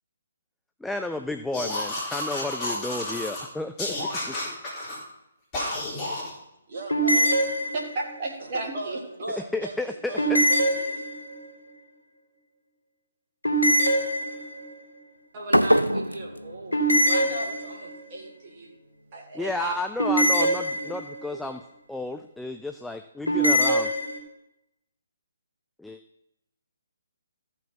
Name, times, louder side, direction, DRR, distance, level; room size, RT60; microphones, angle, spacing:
voice 1, 0.8-4.0 4.3-4.4 9.4-10.4 19.3-21.6 21.9-23.9 25.8-26.0, left 2 dB, 5° left, 6 dB, 0.4 m, -32 dB
sound 1, 1.5-3.4 3.8-5.0 5.5-6.3, left 1 dB, 20° left, 3.9 m, -31 dB
voice 2, 6.7-7.3 8.5-11.0, right 2 dB, 50° right, 0 dB, 2.7 m, -36 dB
sound 2, 6.9-8.2 10.2-11.5 13.4-14.7 16.7-18.0 20.0-21.3 23.3-24.2, right 1 dB, 75° left, 2.3 m, -23 dB
voice 3, 7.7-9.0 15.3-18.7 19.1-19.8 20.8-21.0 21.3-21.4, right 2 dB, 35° right, 0 dB, 2.1 m, -36 dB
sound 3, 15.5-17.5, equal, 90° right, 0.6 m, -25 dB
14.0 x 6.0 x 5.8 m, 0.87 s
figure-of-eight pair, 135°, 0 cm